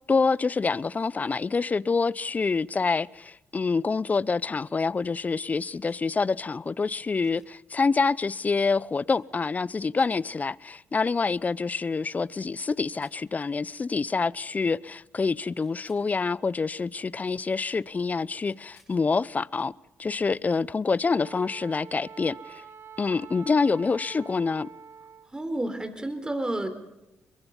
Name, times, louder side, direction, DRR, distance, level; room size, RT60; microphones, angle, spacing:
voice 1, 0.1-19.7 20.0-22.6 23.0-24.7, left 4 dB, 35° left, 0.6 m, -26 dB
sound 1, 5.9-6.0 7.2-7.5 9.1-9.2 9.9-10.1 12.6-13.2 15.6-16.1 18.4-19.0 21.2-21.3, left 5 dB, 85° left, 7.6 m, -62 dB
Wind instrument woodwind instrument, 21.0-25.3, right 6 dB, 60° right, 1.0 m, -46 dB
voice 2, 25.3-26.7, right 1 dB, 15° right, 3.8 m, -30 dB
23.0 x 22.0 x 5.5 m
hypercardioid pair, 50°, 5 cm